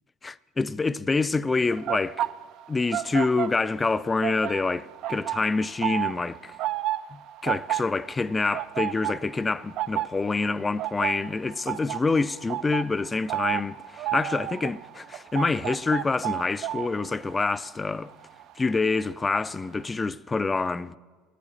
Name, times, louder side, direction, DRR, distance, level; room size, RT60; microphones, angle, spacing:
voice 1, 0.2-2.3 2.7-6.5 7.1-18.1 18.6-21.0, left 3 dB, 20° left, 0.4 m, -27 dB
sound 1, 1.7-19.1 19.3-19.7, right 14 dB, 60° right, 0.3 m, -32 dB
14.5 x 8.4 x 8.7 m
supercardioid pair, 90°, 0 cm